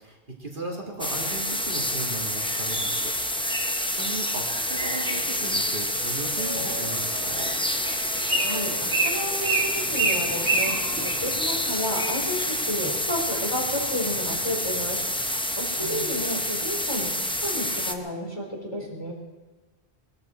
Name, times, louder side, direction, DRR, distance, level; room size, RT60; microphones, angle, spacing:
voice 1, 0.0-3.1 3.5-7.5 15.8-16.1, right 2 dB, 50° right, -2 dB, 2.5 m, -36 dB
sound 1, 1.0-17.9, left 1 dB, 5° left, 0.7 m, -28 dB
Wind instrument woodwind instrument, 4.3-11.6, left 1 dB, 85° left, 3.9 m, -44 dB
Bird, 6.7-11.9, right 2 dB, 90° right, 2.5 m, -29 dB
voice 2, 7.9-8.7 9.0-10.7 11.0-17.1 17.4-19.1, left 1 dB, 25° left, -1 dB, 4.0 m, -32 dB
21.5 x 14.0 x 4.5 m, 1.2 s
omnidirectional pair, 1.1 m